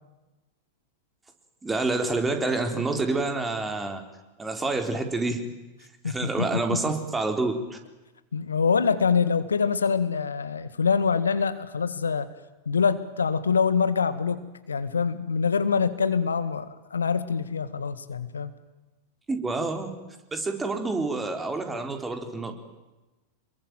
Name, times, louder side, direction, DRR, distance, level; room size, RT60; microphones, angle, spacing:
voice 1, 1.6-4.0 4.4-5.5 6.0-7.8 19.3-19.9 20.3-22.5, right 3 dB, 10° right, 6 dB, 4.2 m, -28 dB
voice 2, 6.0-6.9 8.3-12.3 12.7-18.5, left 6 dB, 70° left, 13 dB, 1.6 m, -25 dB
28.0 x 22.0 x 9.4 m, 1.1 s
figure-of-eight pair, 90°, 0 cm